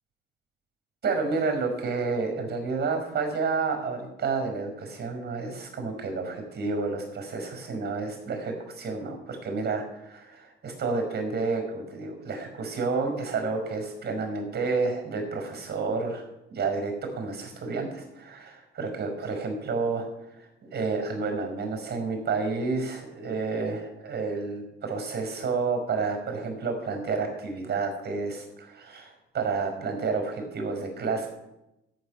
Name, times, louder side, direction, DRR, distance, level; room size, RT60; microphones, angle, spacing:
voice 1, 1.0-16.2 16.5-20.1 20.4-31.3, right 4 dB, 55° right, 4 dB, 5.0 m, -30 dB
13.5 x 6.4 x 9.7 m, 0.90 s
cardioid pair, 90°, 20 cm